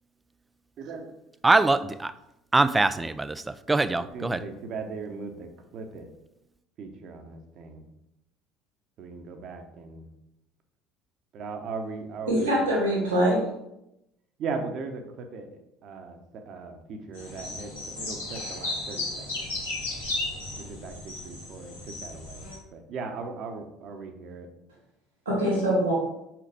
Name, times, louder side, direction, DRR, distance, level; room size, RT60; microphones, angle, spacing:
voice 1, 0.8-1.1 4.0-6.1 6.8-7.9 9.0-10.1 11.3-12.6 14.4-19.5 20.6-24.5, right 4 dB, 50° right, 6 dB, 1.0 m, -38 dB
voice 2, 1.4-2.1 2.5-4.4, right 2 dB, 15° right, 13 dB, 0.4 m, -23 dB
voice 3, 12.3-13.4 25.2-25.9, equal, 90° right, -6 dB, 2.4 m, -23 dB
sound 1, 17.1-22.6, left 2 dB, 85° left, 2.0 m, -35 dB
6.0 x 5.6 x 3.5 m, 0.85 s
figure-of-eight pair, 65°, 0 cm